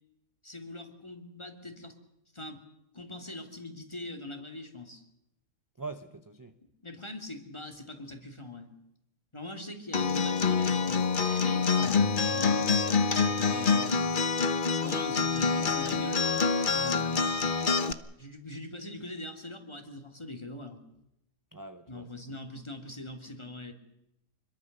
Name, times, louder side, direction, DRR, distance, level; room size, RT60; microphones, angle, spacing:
voice 1, 0.4-1.9 2.3-2.6 2.9-5.0 6.6-8.7 9.3-12.7 13.3-14.1 14.8-16.2 16.7-17.4 18.2-20.8 21.9-23.7, left 2 dB, 15° left, 4 dB, 3.0 m, -42 dB
voice 2, 5.8-6.5 12.6-12.8 21.5-22.1, right 3 dB, 20° right, 8 dB, 0.6 m, -43 dB
Acoustic guitar, 9.9-17.9, left 5 dB, 35° left, 1.0 m, -26 dB
26.0 x 22.5 x 6.8 m, 0.84 s
omnidirectional pair, 1.7 m